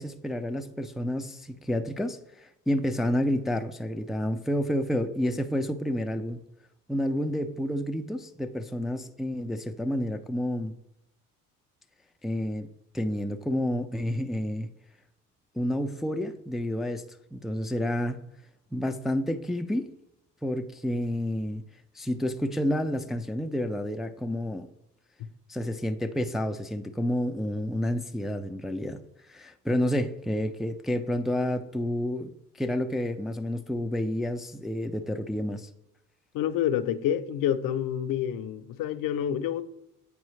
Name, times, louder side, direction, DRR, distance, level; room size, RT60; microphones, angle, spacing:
voice 1, 0.0-6.4 6.9-10.7 12.2-12.7 12.9-14.7 15.6-17.0 17.3-18.2 18.7-19.9 20.4-21.6 22.0-24.7 25.5-29.0 29.3-35.7, left 1 dB, ahead, 0.3 m, -29 dB
voice 2, 36.3-39.6, left 10 dB, 70° left, 0.6 m, -28 dB
8.2 x 4.6 x 3.1 m
supercardioid pair, 80°, 35 cm